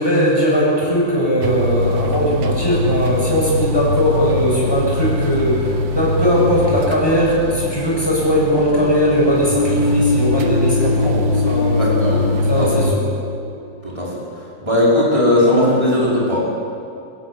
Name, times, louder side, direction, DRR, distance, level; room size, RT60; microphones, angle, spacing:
voice 1, 0.0-11.9 12.5-13.0, equal, 10° left, -5 dB, 7.2 m, -19 dB
sound 1, 1.4-12.9, left 1 dB, 75° right, 1.9 m, -22 dB
sound 2, 8.5-14.2, left 4 dB, 45° left, 0.6 m, -24 dB
voice 2, 11.7-12.2 12.6-12.7 13.8-14.1 14.6-16.4, left 1 dB, 15° right, -6 dB, 5.7 m, -17 dB
22.5 x 13.5 x 9.8 m, 2.5 s
omnidirectional pair, 2.1 m